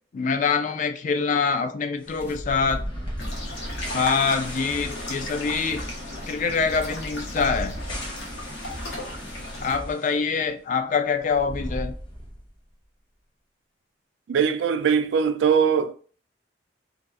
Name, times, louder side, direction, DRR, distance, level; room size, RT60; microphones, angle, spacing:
voice 1, 0.1-2.8 3.9-5.8 6.3-7.8 9.6-11.9, left 5 dB, 45° left, 0.3 m, -25 dB
sound 1, 2.0-10.2 10.5-10.6 11.2-12.6, equal, 25° left, 0.8 m, -37 dB
sound 2, 2.2-2.4 2.7-2.9 3.2-3.4 3.7-3.9 4.2-4.4 4.7-4.9 5.2-5.4 5.7-5.9 6.2-6.4 6.7-6.9 7.2-7.4 7.7-7.9 8.2-8.4 8.7-8.9 9.2-9.4 9.7-9.9, equal, 10° right, 0.5 m, -40 dB
sound 3, 3.2-9.8, left 1 dB, 70° left, 0.8 m, -35 dB
voice 2, 14.3-16.0, right 7 dB, 90° right, 0.3 m, -21 dB
2.6 x 2.3 x 2.3 m
head